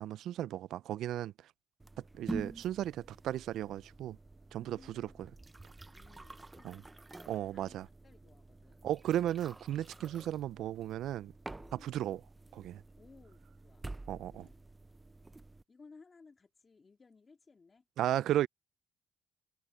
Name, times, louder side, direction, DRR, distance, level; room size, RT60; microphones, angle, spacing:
voice 1, 0.0-1.3 2.0-4.2 4.5-5.1 6.6-6.8 7.3-7.9 8.8-11.3 11.7-12.2 12.5-12.8 14.1-14.5 18.0-18.5, right 12 dB, 80° right, 0.3 m, -35 dB
sound 1, 1.8-15.6, right 2 dB, 20° right, 0.5 m, -48 dB
voice 2, 4.5-5.3 5.9-8.9 11.5-12.1 13.0-14.0 14.3-14.6 15.7-17.8, left 4 dB, 35° left, 2.6 m, -61 dB
cardioid pair, 90°, 0 cm